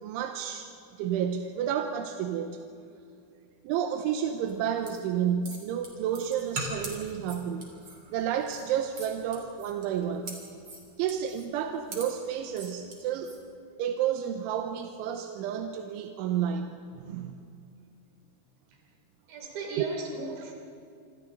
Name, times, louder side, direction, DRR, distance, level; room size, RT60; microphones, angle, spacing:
voice 1, 0.0-2.6 3.6-7.7 8.1-10.5 11.0-13.4 13.8-17.3 19.8-19.9, right 9 dB, 90° right, 5 dB, 3.4 m, -31 dB
sound 1, 4.4-13.4, right 2 dB, 30° right, 3.8 m, -42 dB
voice 2, 19.3-20.5, right 3 dB, 70° right, 1 dB, 5.4 m, -37 dB
27.0 x 26.5 x 4.0 m, 2.4 s
omnidirectional pair, 5.4 m